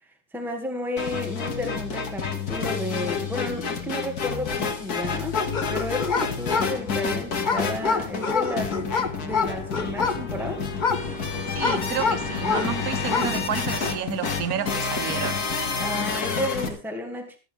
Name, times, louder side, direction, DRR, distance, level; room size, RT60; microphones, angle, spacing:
voice 1, 0.3-8.8 9.2-10.6 15.8-17.4, left 1 dB, ahead, 2.1 m, -32 dB
sound 1, 1.0-16.7, left 5 dB, 70° left, 2.4 m, -29 dB
sound 2, 5.3-12.8 13.0-13.4, left 5 dB, 30° left, 1.2 m, -27 dB
sound 3, 10.9-16.8, right 5 dB, 45° right, 1.8 m, -45 dB
voice 2, 11.5-15.4, right 9 dB, 65° right, 1.5 m, -30 dB
16.0 x 13.0 x 3.5 m
omnidirectional pair, 1.7 m